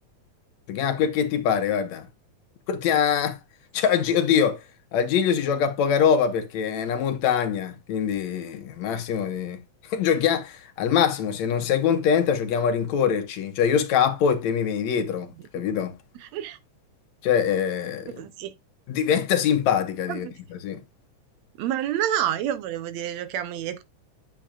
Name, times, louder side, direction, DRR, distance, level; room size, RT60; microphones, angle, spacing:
voice 1, 0.7-2.1 2.7-3.4 3.7-4.6 4.9-9.6 9.9-15.9 17.2-18.2 18.9-20.8, left 8 dB, 70° left, 2.3 m, -23 dB
voice 2, 16.2-16.6 18.1-18.5 20.1-20.3 21.6-23.8, right 11 dB, 75° right, 1.8 m, -28 dB
8.9 x 8.0 x 2.4 m
omnidirectional pair, 3.4 m